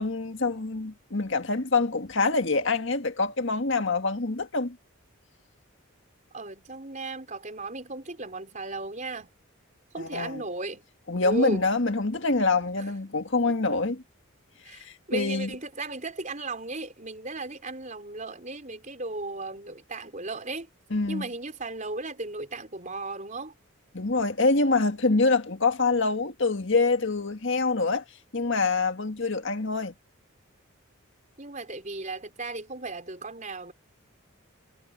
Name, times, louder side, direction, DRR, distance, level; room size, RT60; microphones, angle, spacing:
voice 1, 0.0-4.8 10.0-10.4 11.1-14.0 14.7-15.5 20.9-21.3 23.9-28.0 28.3-29.9, left 3 dB, 55° left, 1.8 m, -25 dB
voice 2, 6.3-9.3 9.9-10.9 11.2-11.7 12.8-12.9 14.6-20.7 21.1-23.5 31.4-33.7, right 2 dB, 35° right, 4.9 m, -35 dB
head